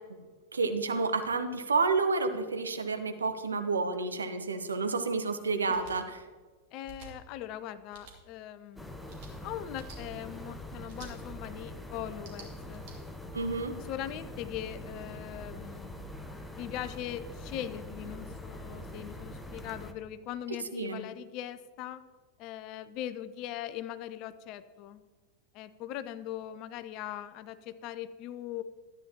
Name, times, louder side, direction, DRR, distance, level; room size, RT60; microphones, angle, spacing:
voice 1, 0.5-6.2 13.3-13.7 20.7-21.0, right 4 dB, 75° right, 8 dB, 0.8 m, -30 dB
sound 1, 5.7-6.0 6.8-7.1 7.9-8.2 9.1-9.3 9.7-10.0 10.9-11.1 12.1-12.9, right 6 dB, 50° right, 2.4 m, -50 dB
voice 2, 6.7-8.9 9.4-12.8 13.8-16.1 16.6-22.0 22.4-25.0 25.5-28.6, left 11 dB, 40° left, 13 dB, 0.5 m, -40 dB
sound 2, 8.8-19.9, left 1 dB, 5° left, 0.8 m, -44 dB
13.0 x 9.5 x 2.9 m, 1.4 s
figure-of-eight pair, 90°, 0 cm